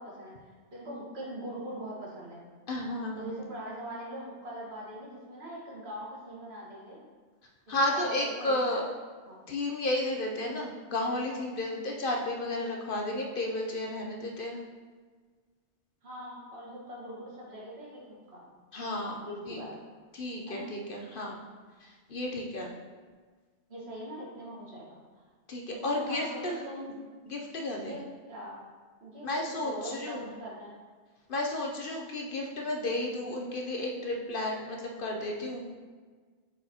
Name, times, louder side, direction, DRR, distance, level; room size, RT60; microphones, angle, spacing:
voice 1, 0.0-2.4 3.2-7.0 7.7-8.8 9.3-9.4 16.0-18.5 19.2-19.8 20.5-20.7 23.7-25.2 25.7-26.9 27.7-28.0 28.3-28.6 29.0-30.8, equal, 65° right, -5 dB, 1.8 m, -42 dB
voice 2, 2.7-3.3 7.7-8.8 9.5-14.6 18.7-19.6 20.1-21.4 21.8-22.7 25.5-26.6 27.3-28.0 29.2-30.3 31.3-35.8, left 1 dB, 55° left, 0 dB, 0.8 m, -32 dB
7.8 x 4.7 x 2.8 m, 1.5 s
omnidirectional pair, 1.2 m